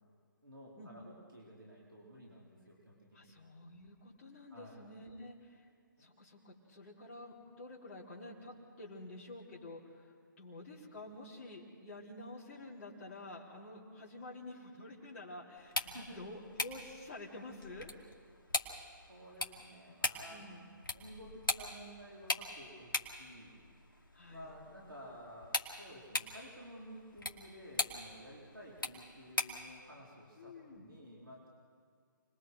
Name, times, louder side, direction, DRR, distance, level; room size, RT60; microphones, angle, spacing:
voice 1, 0.4-3.3 4.5-4.8 6.0-6.1 15.8-16.2 19.0-20.6 20.9-23.6 24.3-31.5, equal, 90° right, -4 dB, 4.6 m, -53 dB
voice 2, 3.1-5.7 6.0-17.9 20.3-20.7 24.1-24.5 30.4-30.8, left 2 dB, 35° left, -7 dB, 3.9 m, -49 dB
sound 1, 15.6-29.7, left 2 dB, 80° left, 2.5 m, -41 dB
29.5 x 21.5 x 4.8 m, 2.2 s
figure-of-eight pair, 140°, 11 cm